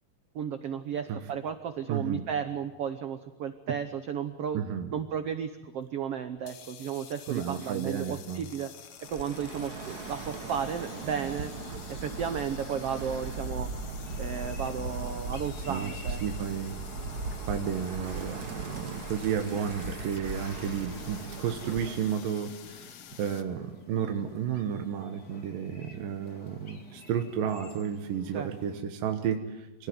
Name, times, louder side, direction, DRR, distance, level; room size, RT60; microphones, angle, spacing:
voice 1, 0.3-4.6 4.9-8.7 9.1-11.5 12.0-13.7 14.2-16.2 28.3-28.5, right 7 dB, 90° right, 9 dB, 1.3 m, -34 dB
voice 2, 1.9-2.2 4.5-4.9 7.3-8.5 15.7-15.9 16.2-16.8 17.5-29.9, right 8 dB, 70° right, 5 dB, 2.8 m, -32 dB
sound 1, 6.4-23.4, left 9 dB, 60° left, 2.0 m, -49 dB
Bird, 9.0-22.1, right 3 dB, 55° right, 1.1 m, -38 dB
sound 2, 14.0-28.8, left 4 dB, 30° left, 2.3 m, -52 dB
25.5 x 18.5 x 9.5 m, 1.1 s
omnidirectional pair, 4.3 m